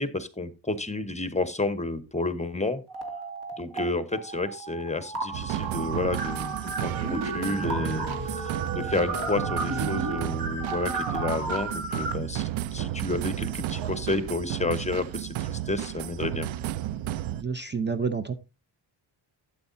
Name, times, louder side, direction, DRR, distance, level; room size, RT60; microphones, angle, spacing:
voice 1, 0.0-2.8 3.6-16.5, left 2 dB, 15° left, 12 dB, 1.0 m, -31 dB
sound 1, 2.9-3.8 4.1-12.1, right 3 dB, 55° right, 2.1 m, -33 dB
sound 2, 5.3-17.4, right 12 dB, 80° right, 0.6 m, -33 dB
voice 2, 17.3-18.3, right 5 dB, 25° right, 10 dB, 0.6 m, -29 dB
12.0 x 8.3 x 2.6 m, 0.26 s
wide cardioid pair, 120°, 46 cm